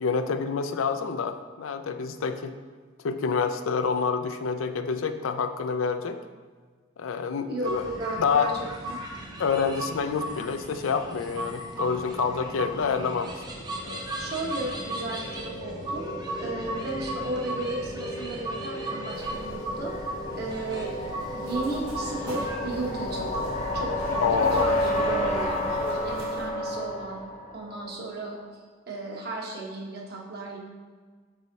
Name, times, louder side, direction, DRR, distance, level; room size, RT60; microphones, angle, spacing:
voice 1, 0.0-2.5 3.0-6.2 7.0-7.8 8.2-8.5 9.4-13.4 13.8-14.0 24.2-24.7, left 5 dB, 80° left, 8 dB, 0.4 m, -27 dB
voice 2, 7.4-9.0 14.2-16.0 16.4-20.0 20.3-20.9 21.3-23.5 23.7-25.7 26.0-30.6, right 2 dB, 55° right, -2 dB, 1.2 m, -34 dB
sound 1, 7.6-25.5, right 1 dB, 20° right, 0.7 m, -37 dB
sound 2, 13.2-28.0, left 1 dB, 35° left, 0.7 m, -33 dB
sound 3, 19.1-26.5, right 1 dB, 85° right, 1.0 m, -43 dB
5.5 x 4.8 x 4.0 m, 1.5 s
head